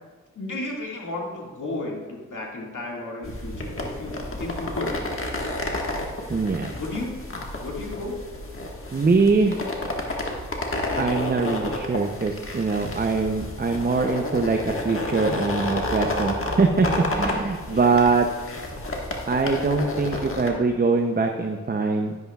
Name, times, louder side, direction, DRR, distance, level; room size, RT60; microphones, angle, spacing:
voice 1, 0.4-5.0 5.5-5.7 6.7-7.3 7.6-8.2 17.7-18.0, left 2 dB, 85° left, -2 dB, 2.0 m, -33 dB
sound 1, 3.2-20.5, left 1 dB, 45° left, 1.5 m, -31 dB
voice 2, 6.3-6.7 8.9-9.7 11.0-18.3 19.3-22.2, right 4 dB, 30° right, 4 dB, 0.6 m, -23 dB
11.5 x 10.5 x 2.3 m, 1.5 s
wide cardioid pair, 70°, 30 cm